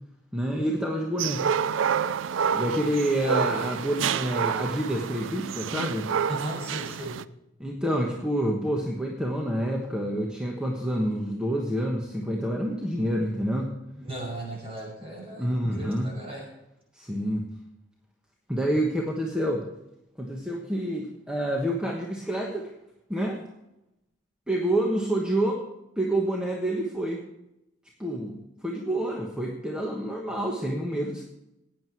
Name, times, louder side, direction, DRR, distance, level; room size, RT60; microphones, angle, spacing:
voice 1, 0.3-1.5 2.5-6.1 7.6-13.7 15.4-16.1 16.9-17.4 18.5-19.6 20.2-22.7 23.1-23.4 24.5-25.7 26.0-27.2 28.0-28.4 28.6-31.3, right 1 dB, 5° right, -1 dB, 1.2 m, -28 dB
sound 1, 1.2-7.2, right 7 dB, 80° right, 0.4 m, -28 dB
voice 2, 6.2-7.2 14.0-16.5, right 1 dB, 30° right, -2 dB, 5.9 m, -37 dB
16.0 x 9.5 x 4.6 m, 0.88 s
head